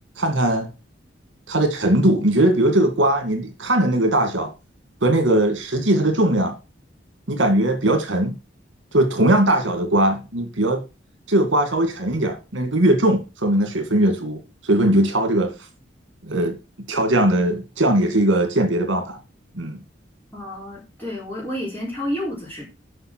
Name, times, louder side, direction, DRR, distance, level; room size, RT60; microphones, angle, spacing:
voice 1, 0.2-0.7 1.5-4.5 5.0-6.5 7.3-8.3 8.9-10.8 11.3-14.4 14.6-15.5 16.2-16.6 16.9-19.2 19.6-19.8, right 1 dB, 75° right, 2.3 m, -19 dB
voice 2, 20.3-22.7, left 1 dB, 10° left, 4.5 m, -30 dB
7.8 x 5.9 x 6.2 m
head